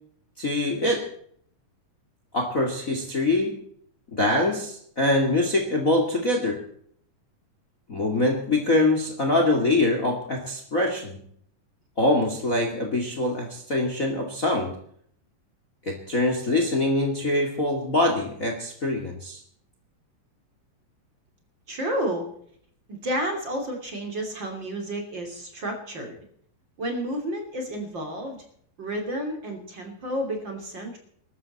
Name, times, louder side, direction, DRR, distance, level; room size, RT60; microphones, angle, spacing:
voice 1, 0.4-1.1 2.3-3.6 4.1-6.6 7.9-11.2 12.0-14.8 15.8-19.4, left 2 dB, 30° left, 3 dB, 2.2 m, -24 dB
voice 2, 21.7-22.3 22.9-26.2 26.8-28.4 28.8-31.0, equal, 35° right, 3 dB, 3.5 m, -31 dB
22.0 x 13.0 x 4.2 m, 0.62 s
omnidirectional pair, 3.8 m